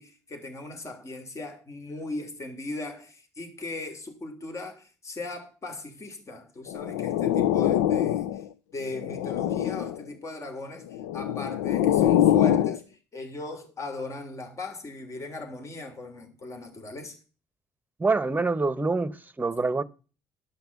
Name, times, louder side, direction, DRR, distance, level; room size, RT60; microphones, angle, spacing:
voice 1, 0.0-8.5 8.7-17.2, left 2 dB, 35° left, 3.2 m, -38 dB
sound 1, 6.7-8.5 8.9-10.0 10.9-12.8, left 11 dB, 85° left, 0.5 m, -24 dB
voice 2, 18.0-19.8, right 3 dB, 20° right, 1.0 m, -26 dB
13.0 x 5.9 x 7.1 m
hypercardioid pair, 55°, 8 cm